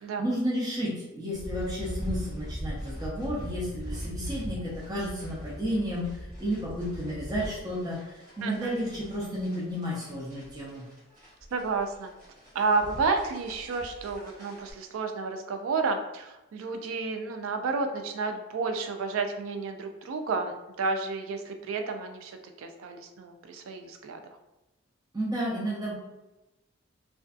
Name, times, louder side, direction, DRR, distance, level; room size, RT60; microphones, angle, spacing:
voice 1, 0.2-6.1 6.4-10.8 25.1-25.9, equal, 20° right, -6 dB, 0.6 m, -32 dB
sound 1, 1.3-14.7, equal, 40° right, 0.9 m, -40 dB
voice 2, 8.4-8.7 11.5-12.1 12.5-24.2, right 4 dB, 85° right, 5 dB, 0.4 m, -31 dB
2.5 x 2.3 x 2.3 m, 0.99 s
head